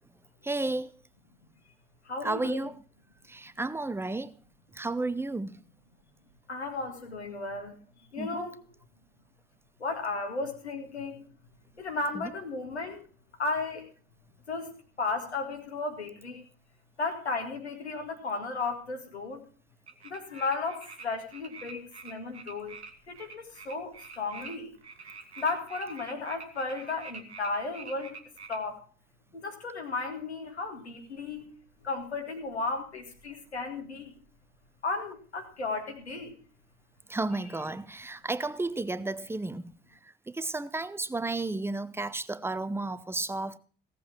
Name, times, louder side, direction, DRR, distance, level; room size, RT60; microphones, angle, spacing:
voice 1, 0.4-0.9 2.2-2.8 3.3-4.3 4.7-5.6 8.2-8.5 12.1-12.3 37.1-39.6 40.3-43.6, right 2 dB, 5° right, 0.7 m, -32 dB
voice 2, 2.1-2.7 6.5-7.8 8.1-8.6 9.8-11.2 11.8-13.1 13.4-13.9 14.5-16.5 17.0-19.5 20.0-22.8 23.1-24.8 25.4-28.2 28.5-28.8 29.3-31.5 31.8-34.1 34.8-36.3, left 3 dB, 85° left, 2.1 m, -34 dB
sound 1, 19.9-21.1 21.3-28.6, right 5 dB, 85° right, 1.2 m, -46 dB
17.0 x 7.6 x 6.0 m
figure-of-eight pair, 55°, 32 cm